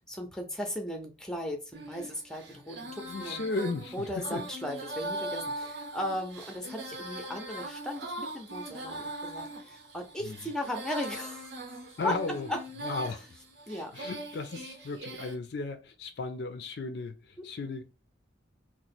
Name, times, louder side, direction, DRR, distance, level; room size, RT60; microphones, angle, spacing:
voice 1, 0.1-3.4 3.9-11.5 12.0-12.1 12.5-12.6 13.7-13.9, left 1 dB, 5° left, 0.5 m, -36 dB
Female singing, 1.7-15.4, right 1 dB, 65° right, 0.7 m, -41 dB
voice 2, 3.1-4.4 10.2-10.4 12.0-12.5 12.8-13.3 13.9-17.8, left 3 dB, 55° left, 0.4 m, -35 dB
3.0 x 2.0 x 4.1 m
head